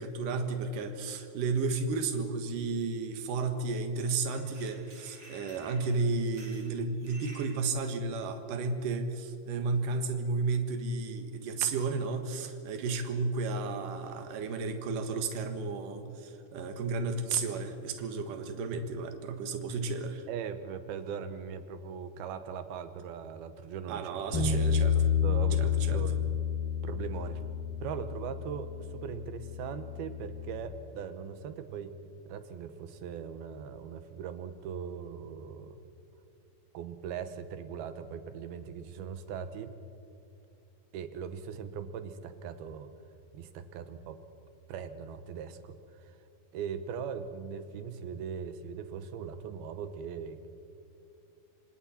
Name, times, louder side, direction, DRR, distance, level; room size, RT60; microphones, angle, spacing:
voice 1, 0.0-20.3 23.9-25.1 25.6-26.0, right 4 dB, 65° right, 6 dB, 2.9 m, -33 dB
sound 1, 3.9-4.1 4.3-7.5, right 1 dB, 25° right, 8.3 m, -53 dB
voice 2, 20.3-24.4 25.2-26.3 26.8-27.4 27.8-31.9 32.3-35.8 36.7-39.7 40.9-42.9 43.3-44.2 44.7-46.2 46.5-50.5, right 7 dB, 80° right, 10 dB, 3.0 m, -40 dB
Bass guitar, 24.3-30.6, left 7 dB, 65° left, 3.5 m, -30 dB
27.0 x 25.5 x 4.4 m, 2.6 s
omnidirectional pair, 4.4 m